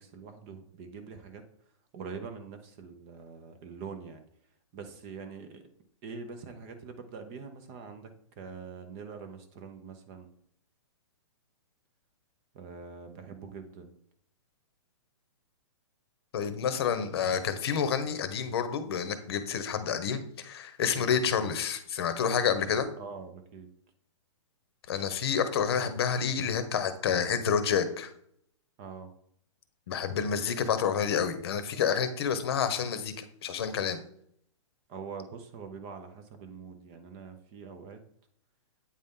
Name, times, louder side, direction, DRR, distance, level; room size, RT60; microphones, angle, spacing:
voice 1, 0.0-1.4 1.9-4.2 4.7-5.6 6.0-8.1 8.4-10.3 12.5-13.9 20.8-21.1 23.0-23.7 28.8-29.1 34.9-38.0, right 5 dB, 25° right, 7 dB, 0.6 m, -44 dB
voice 2, 16.3-22.9 24.9-28.1 29.9-34.0, left 7 dB, 50° left, 10 dB, 0.9 m, -29 dB
8.6 x 4.1 x 3.6 m, 0.67 s
hypercardioid pair, 160°, 17 cm